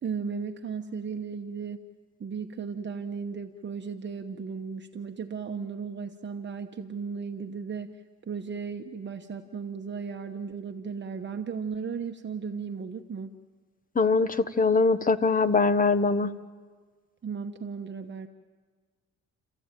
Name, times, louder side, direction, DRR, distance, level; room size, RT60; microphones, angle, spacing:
voice 1, 0.0-1.8 2.2-7.9 8.3-13.3 17.2-18.3, right 6 dB, 35° right, 4 dB, 1.1 m, -35 dB
voice 2, 13.9-16.3, left 4 dB, 30° left, 13 dB, 1.2 m, -22 dB
30.0 x 14.0 x 9.1 m, 1.5 s
cardioid pair, 90°, 30 cm